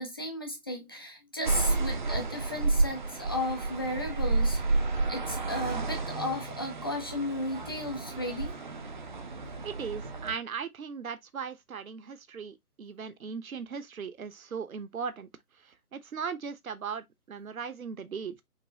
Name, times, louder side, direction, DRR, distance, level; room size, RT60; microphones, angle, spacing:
voice 1, 0.0-4.8 5.1-8.6, left 1 dB, 15° left, 0.6 m, -34 dB
sound 1, 1.4-10.4, right 3 dB, 30° right, 0.6 m, -31 dB
voice 2, 9.6-15.3 15.6-18.4, right 6 dB, 60° right, 1.0 m, -38 dB
6.1 x 3.0 x 2.8 m
figure-of-eight pair, 140°, 47 cm